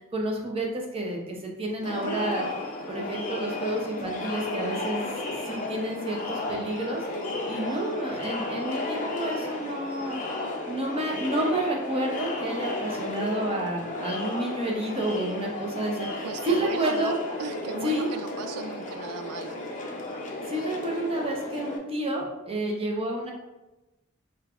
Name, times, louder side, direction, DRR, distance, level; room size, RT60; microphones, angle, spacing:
voice 1, 0.1-2.5 2.9-5.1 5.5-7.0 7.4-10.2 10.7-17.2 17.8-18.1 20.5-23.3, right 1 dB, 25° right, -1 dB, 0.6 m, -30 dB
Crowd, 1.8-21.8, left 2 dB, 35° left, 0.5 m, -33 dB
voice 2, 16.2-19.6, right 5 dB, 90° right, 8 dB, 0.4 m, -37 dB
5.1 x 2.3 x 2.4 m, 1.0 s
head